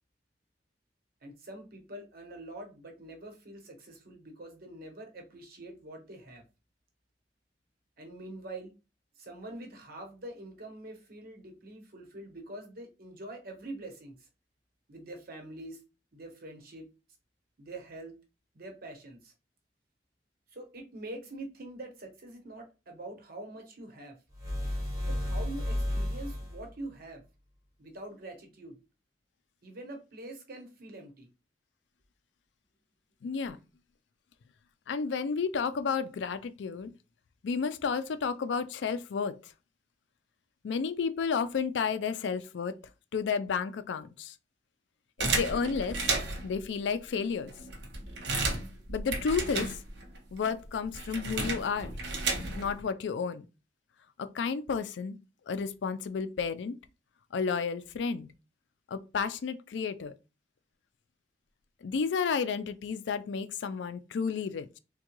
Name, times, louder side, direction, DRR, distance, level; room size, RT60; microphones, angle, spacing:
voice 1, 1.2-6.4 8.0-8.7 9.2-14.3 14.9-15.8 16.1-16.9 17.6-18.2 18.5-19.3 20.5-24.2 25.1-27.2 27.8-28.8 29.6-31.3, right 1 dB, 60° right, 1.0 m, -45 dB
sound 1, 24.3-26.7, left 1 dB, 20° right, 1.1 m, -32 dB
voice 2, 33.2-33.6 34.9-36.9 37.4-39.5 40.6-42.7 43.1-44.3 45.2-46.0 46.4-47.5 48.9-49.8 50.3-51.9 52.5-53.4 54.2-55.2 55.5-56.8 57.3-58.3 58.9-60.1 61.8-64.8, left 5 dB, 85° left, 0.4 m, -32 dB
sound 2, 45.2-46.6 47.2-47.3 47.5-50.2 50.4-52.8, right 3 dB, 80° right, 0.8 m, -33 dB
3.5 x 2.2 x 2.9 m
head